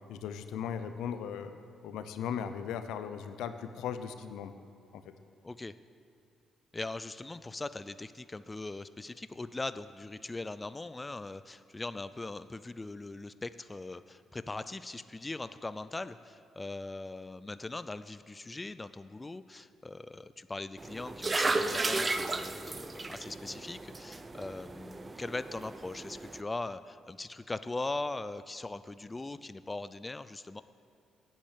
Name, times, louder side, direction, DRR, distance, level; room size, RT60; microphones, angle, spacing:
voice 1, 0.1-1.5 1.8-4.5, left 8 dB, 90° left, 10 dB, 0.7 m, -37 dB
voice 2, 6.7-30.6, left 2 dB, 20° left, 13 dB, 0.3 m, -40 dB
sound 1, 20.8-26.4, right 3 dB, 25° right, 0.6 m, -35 dB
8.7 x 8.4 x 8.5 m, 2.4 s
cardioid pair, 90°, 0 cm